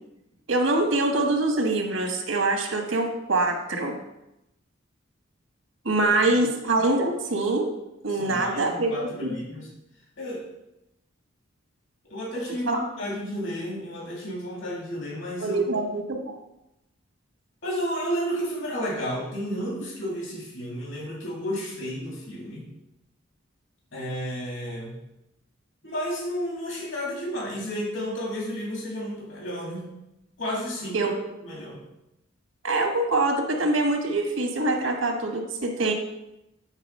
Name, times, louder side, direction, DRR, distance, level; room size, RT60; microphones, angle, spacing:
voice 1, 0.5-4.0 5.8-7.7 8.0-9.3 12.7-12.8 15.4-16.4 30.9-31.1 32.6-35.9, right 2 dB, 85° right, 3 dB, 1.5 m, -24 dB
voice 2, 8.1-9.7 10.2-10.5 12.1-15.8 17.6-22.7 23.9-25.0 25.8-29.9 30.4-31.1 31.4-31.8, equal, 70° left, -4 dB, 2.3 m, -32 dB
9.0 x 3.9 x 5.4 m, 0.89 s
head